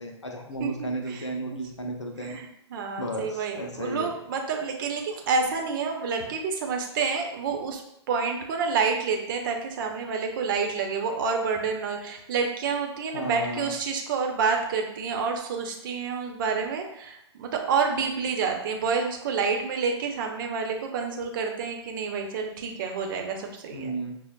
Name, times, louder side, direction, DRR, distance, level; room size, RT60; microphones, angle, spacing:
voice 1, 0.0-2.4 3.0-4.1 13.1-13.7 23.7-24.2, right 1 dB, 85° left, 3 dB, 0.7 m, -33 dB
voice 2, 2.7-7.8 8.1-24.0, right 5 dB, 45° right, 3 dB, 0.7 m, -28 dB
5.9 x 2.1 x 2.2 m, 0.76 s
figure-of-eight pair, 110°, 15 cm